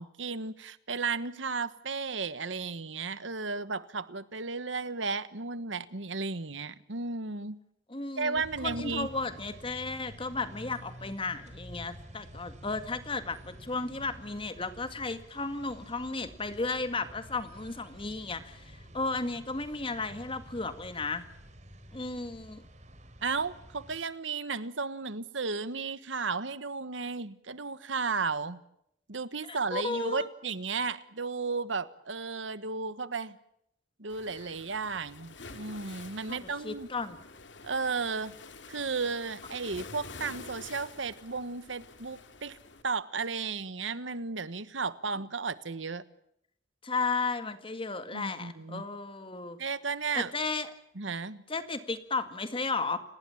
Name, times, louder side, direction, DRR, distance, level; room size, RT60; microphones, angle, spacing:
voice 1, 0.0-7.6 8.2-9.1 23.2-28.6 29.1-33.4 34.0-36.9 37.6-38.3 38.7-42.6 42.8-46.0 48.1-48.8 49.6-50.3 51.0-51.4, right 4 dB, 80° right, 15 dB, 1.4 m, -34 dB
voice 2, 7.9-21.3 21.9-22.6 29.5-30.3 36.3-37.2 46.8-49.6 50.2-50.7 51.5-53.0, left 3 dB, 30° left, 10 dB, 2.0 m, -34 dB
sound 1, 8.3-24.0, equal, 40° right, 3.7 m, -50 dB
Waves surf, 34.1-42.8, left 4 dB, 70° left, 2.5 m, -48 dB
30.0 x 19.5 x 7.3 m, 0.74 s
head